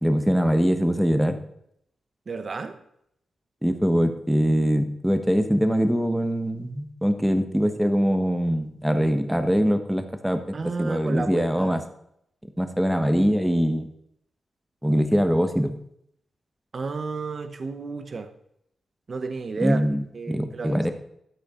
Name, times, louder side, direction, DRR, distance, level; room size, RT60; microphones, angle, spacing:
voice 1, 0.0-1.4 3.6-11.8 12.6-13.9 14.8-15.7 19.6-20.9, equal, ahead, 8 dB, 1.0 m, -23 dB
voice 2, 2.3-2.7 10.5-11.7 16.7-18.3 19.1-19.8 20.1-20.8, right 4 dB, 40° right, 9 dB, 0.8 m, -32 dB
12.5 x 8.5 x 3.7 m, 0.73 s
wide cardioid pair, 140°, 0 cm